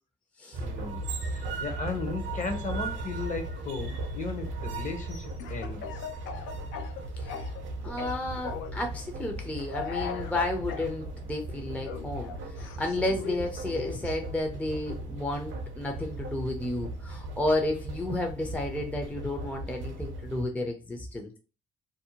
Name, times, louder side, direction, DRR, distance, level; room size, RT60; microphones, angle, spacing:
sound 1, 0.5-20.5, right 2 dB, 70° right, 0.6 m, -37 dB
voice 1, 0.6-6.0, left 4 dB, 40° left, 0.8 m, -36 dB
Speech / Cough, 5.4-7.7 8.0-8.8 9.7-10.9 11.8-14.2, left 7 dB, 80° left, 0.5 m, -39 dB
voice 2, 7.8-21.3, left 1 dB, 5° left, 0.5 m, -32 dB
2.6 x 2.0 x 2.8 m
cardioid pair, 90°, 20 cm